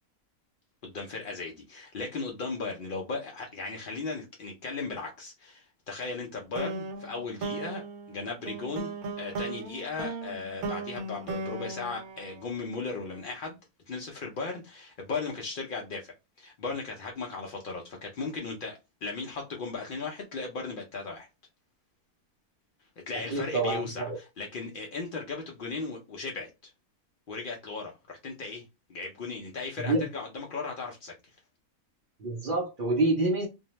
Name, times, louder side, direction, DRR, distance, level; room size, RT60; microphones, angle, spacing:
voice 1, 0.8-8.9 9.2-13.6 13.9-21.3 23.1-26.7 27.3-31.1, left 4 dB, 70° left, 0.5 m, -37 dB
sound 1, 6.6-13.0, right 3 dB, 80° right, 1.1 m, -37 dB
voice 2, 23.3-24.2 29.8-30.1 32.2-33.5, right 2 dB, 60° right, 0.5 m, -27 dB
2.6 x 2.1 x 2.9 m
omnidirectional pair, 1.5 m